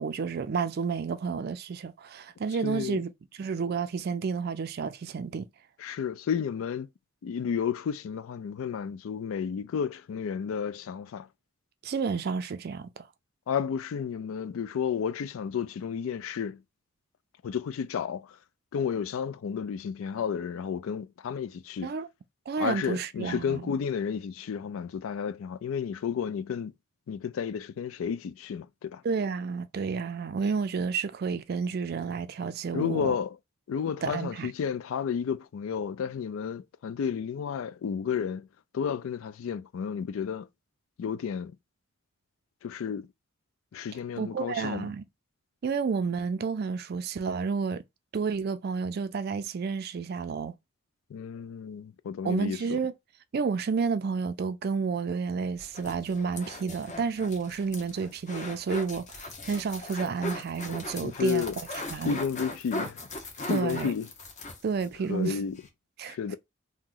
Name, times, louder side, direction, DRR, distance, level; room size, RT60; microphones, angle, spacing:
voice 1, 0.0-5.5 11.8-13.1 21.8-22.1 22.5-23.6 29.0-33.2 34.0-34.5 44.2-45.1 45.6-47.8 48.1-50.5 52.2-52.9 53.3-61.5 61.9-62.2 63.5-63.9 64.6-65.4 66.0-66.2, right 5 dB, 50° right, 0.3 m, -30 dB
voice 2, 2.6-3.1 5.8-6.9 7.2-11.3 13.5-16.6 17.4-18.3 18.7-21.9 22.6-26.7 27.1-29.0 32.7-33.4 33.7-38.5 38.7-40.5 41.0-41.5 42.6-43.1 43.7-44.9 51.1-52.8 61.0-61.6 62.0-63.0 63.5-64.1 65.1-65.6 66.1-66.4, left 7 dB, 75° left, 0.3 m, -32 dB
sound 1, 55.6-64.9 65.2-65.3 65.6-65.7, left 2 dB, 35° left, 0.7 m, -39 dB
2.9 x 2.1 x 3.7 m
head